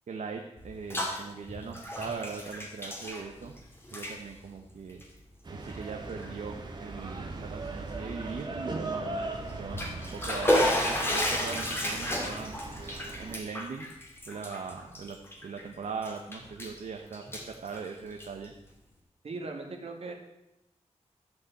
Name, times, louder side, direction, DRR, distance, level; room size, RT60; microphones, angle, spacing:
voice 1, 0.1-3.5 3.9-5.0 5.5-12.6 13.2-13.9 14.3-15.2 15.4-17.2 17.6-18.5, right 5 dB, 85° right, 3 dB, 1.1 m, -40 dB
Bathtub (filling or washing), 0.6-1.2 1.5-3.6 3.8-4.1 4.9-5.0 5.7-5.8 6.2-6.3 9.5-15.6 16.0-16.8 17.1-18.5, left 1 dB, 20° left, 2.4 m, -31 dB
sound 1, 5.4-13.3, right 2 dB, 40° right, 1.7 m, -39 dB
voice 2, 19.2-20.1, right 3 dB, 55° right, 2 dB, 2.1 m, -38 dB
13.0 x 5.8 x 7.7 m, 0.90 s
wide cardioid pair, 155°, 12 cm